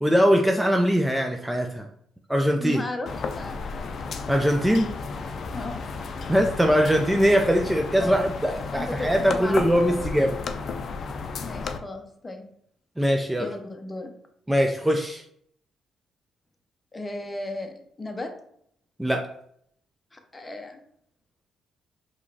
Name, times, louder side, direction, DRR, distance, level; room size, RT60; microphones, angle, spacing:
voice 1, 0.0-1.9 2.3-2.8 4.3-4.9 6.3-10.4 13.0-13.5 14.5-15.2 19.0-19.3, equal, 5° right, 3 dB, 0.4 m, -21 dB
voice 2, 2.6-4.0 5.5-5.8 8.0-8.2 8.7-9.6 9.9-10.0 11.4-12.5 13.4-14.1 16.9-18.3 20.1-20.8, left 2 dB, 20° left, 5 dB, 0.7 m, -35 dB
sound 1, 3.1-11.8, left 4 dB, 55° left, 0.4 m, -33 dB
4.8 x 3.0 x 2.7 m, 0.68 s
cardioid pair, 90°, 0 cm